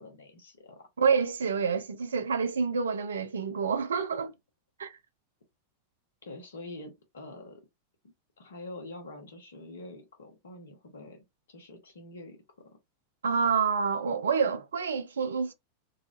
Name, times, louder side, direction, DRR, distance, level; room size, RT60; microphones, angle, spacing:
voice 1, 0.0-0.9 6.2-7.6 8.4-12.4, left 2 dB, 65° left, 1.1 m, -45 dB
voice 2, 1.0-4.3 4.8-5.0 13.2-15.5, right 5 dB, 70° right, 0.4 m, -28 dB
4.0 x 2.4 x 2.5 m
figure-of-eight pair, 90°, 0 cm